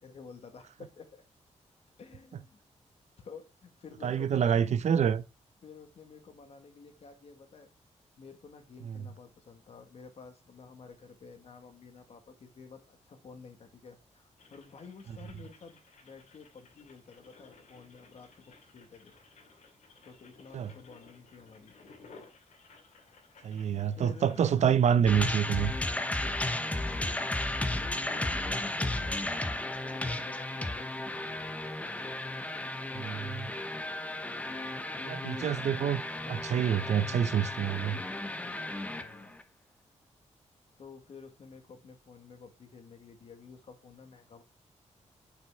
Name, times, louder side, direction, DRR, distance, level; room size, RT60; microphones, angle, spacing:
voice 1, 0.0-1.2 2.0-2.6 3.2-4.5 5.6-7.7 8.2-19.1 20.1-21.7 22.9-23.5 24.0-24.5 26.6-27.2 27.7-32.1 32.9-33.2 34.9-35.7 36.1-36.7 38.8-39.4 40.8-44.4, left 5 dB, 55° left, 1.7 m, -51 dB
voice 2, 4.0-5.2 8.8-9.1 20.5-20.7 23.4-25.7 33.0-33.5 35.1-36.0 36.3-38.0, right 8 dB, 70° right, 0.6 m, -27 dB
sound 1, 14.4-31.5, left 4 dB, 80° left, 2.4 m, -58 dB
sound 2, 25.1-39.4, left 1 dB, 10° left, 0.9 m, -34 dB
7.5 x 5.8 x 3.5 m
wide cardioid pair, 125°, 12 cm